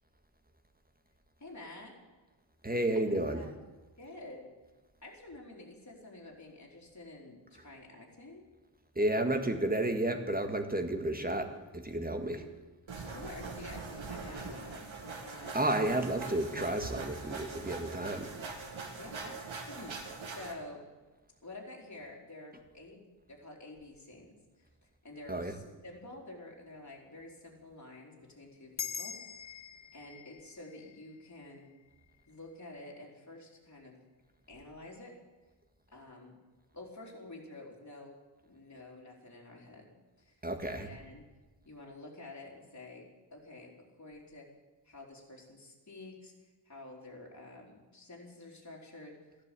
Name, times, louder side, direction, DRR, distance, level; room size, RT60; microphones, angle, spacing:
voice 1, 1.4-2.0 3.0-3.1 3.3-3.5 4.0-4.5 5.0-8.4 12.9-15.9 18.9-20.0 20.3-20.8 21.4-24.3 24.6-24.7 25.0-29.2 29.9-31.7 32.3-33.9 34.5-35.1 35.9-36.4 36.7-38.2 38.4-41.2 41.6-44.5 44.8-46.3 46.7-49.4, left 2 dB, 35° left, -2 dB, 4.0 m, -49 dB
voice 2, 2.6-3.4 9.0-12.4 15.5-18.3 25.3-25.5 40.4-40.9, right 1 dB, 20° right, 6 dB, 1.8 m, -31 dB
sound 1, 12.9-20.5, right 4 dB, 80° right, 2.1 m, -42 dB
sound 2, 28.8-33.5, left 7 dB, 65° left, 1.0 m, -45 dB
15.0 x 11.0 x 8.4 m, 1.2 s
wide cardioid pair, 95°, 46 cm